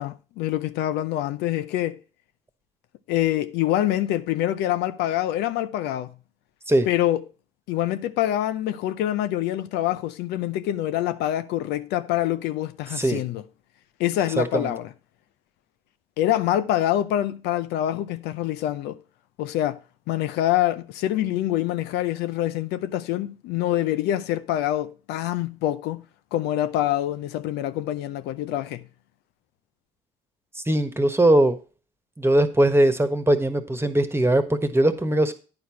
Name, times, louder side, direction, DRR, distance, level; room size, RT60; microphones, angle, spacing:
voice 1, 0.0-2.0 3.1-6.1 6.9-7.2 7.7-13.4 14.0-14.9 16.2-19.0 19.4-19.8 20.1-26.0 26.3-28.9, left 13 dB, 75° left, 0.5 m, -25 dB
voice 2, 14.4-14.7 30.5-31.6 32.2-35.3, right 1 dB, 15° right, 1.4 m, -20 dB
9.5 x 4.7 x 5.8 m
hypercardioid pair, 55°, 17 cm